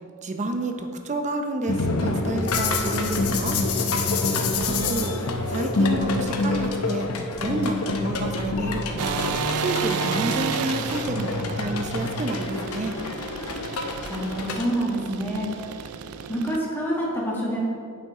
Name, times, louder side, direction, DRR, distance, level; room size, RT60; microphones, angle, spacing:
voice 1, 0.2-3.6 4.7-7.1 7.4-9.2 9.6-13.0, right 2 dB, 35° right, 5 dB, 0.6 m, -30 dB
sound 1, 1.7-14.7, left 3 dB, 80° left, 0.7 m, -27 dB
voice 2, 4.4-4.9 14.1-15.5 16.3-17.6, right 1 dB, 10° left, -5 dB, 1.4 m, -27 dB
sound 2, 9.0-16.6, right 6 dB, 80° right, 0.4 m, -32 dB
8.8 x 5.6 x 3.6 m, 2.2 s
head